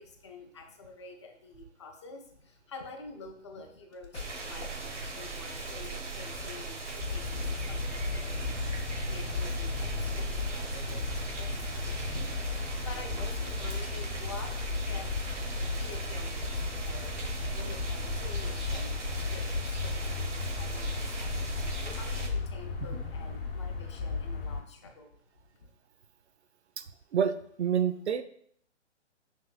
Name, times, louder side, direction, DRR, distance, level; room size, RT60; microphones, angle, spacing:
voice 1, 0.0-14.5 14.8-25.1 25.5-25.7, left 3 dB, 25° left, 3 dB, 0.4 m, -48 dB
sound 1, 3.7-10.8, left 4 dB, 75° left, 0.6 m, -48 dB
sound 2, 4.1-22.3, right 4 dB, 90° right, 0.8 m, -38 dB
sound 3, 7.0-24.6, left 4 dB, 50° left, 0.8 m, -35 dB
voice 2, 27.1-28.2, right 8 dB, 70° right, 12 dB, 0.5 m, -28 dB
5.5 x 3.4 x 2.3 m, 0.65 s
figure-of-eight pair, 130°, 35 cm